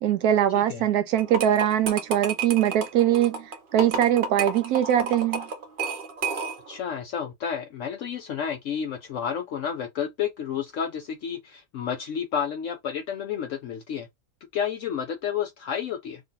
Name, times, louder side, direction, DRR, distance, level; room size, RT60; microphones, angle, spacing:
voice 1, 0.0-5.5, right 11 dB, 85° right, 1.1 m, -22 dB
sound 1, 1.2-6.8, right 5 dB, 45° right, 0.7 m, -31 dB
voice 2, 6.7-14.1 14.5-16.2, left 8 dB, 65° left, 0.8 m, -31 dB
3.2 x 2.7 x 3.8 m
omnidirectional pair, 1.6 m